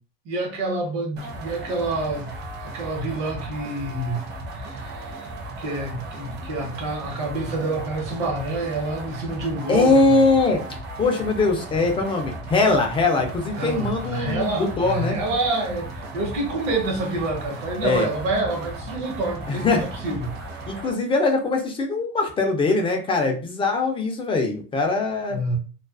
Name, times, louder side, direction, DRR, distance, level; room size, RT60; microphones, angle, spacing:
voice 1, 0.2-2.3 2.6-4.2 4.5-5.3 5.6-10.2 13.6-20.3 25.3-25.6, right 2 dB, 65° right, 1.0 m, -27 dB
sound 1, 1.2-20.9, right 1 dB, 35° right, 0.6 m, -36 dB
voice 2, 9.7-10.6 11.0-15.2 17.8-18.1 19.5-19.8 20.7-25.4, left 3 dB, 20° left, 0.3 m, -21 dB
2.3 x 2.2 x 2.3 m
supercardioid pair, 135°, 30 cm